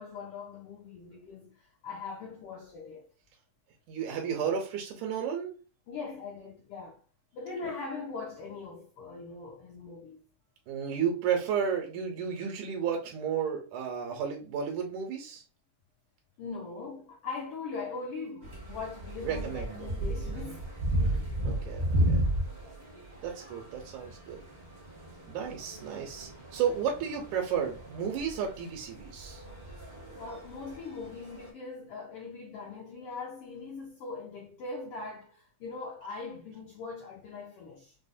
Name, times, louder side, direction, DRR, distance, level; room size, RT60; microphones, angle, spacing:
voice 1, 0.0-3.1 5.9-7.0 7.3-10.2 16.4-20.7 30.2-37.9, left 4 dB, 85° left, 1.2 m, -41 dB
voice 2, 3.9-5.6 7.6-7.7 10.7-15.4 19.2-19.9 20.3-20.6 21.0-22.3 23.2-24.4 25.3-29.4 29.9-30.2, right 7 dB, 85° right, 2.1 m, -33 dB
sound 1, 18.4-31.5, right 1 dB, 40° right, 0.6 m, -34 dB
5.5 x 2.1 x 2.5 m
omnidirectional pair, 3.5 m